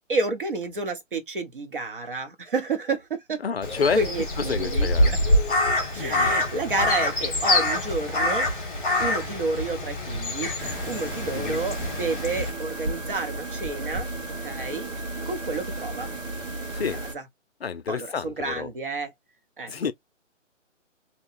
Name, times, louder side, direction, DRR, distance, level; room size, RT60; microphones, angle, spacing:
voice 1, 0.1-3.4 4.0-4.9 5.9-8.5 9.0-14.1 14.4-14.9 15.3-16.1 17.9-19.1 19.6-19.7, right 3 dB, 45° right, 0.8 m, -30 dB
voice 2, 3.4-4.0 4.4-5.1 6.0-6.3 11.3-11.6 16.7-17.0 17.6-18.7 19.7-19.9, left 6 dB, 55° left, 0.5 m, -29 dB
Crow, 3.6-12.5, left 1 dB, 5° left, 0.7 m, -25 dB
sound 1, 10.6-17.1, right 2 dB, 80° right, 1.6 m, -34 dB
2.9 x 2.2 x 4.1 m
hypercardioid pair, 170°, 38 cm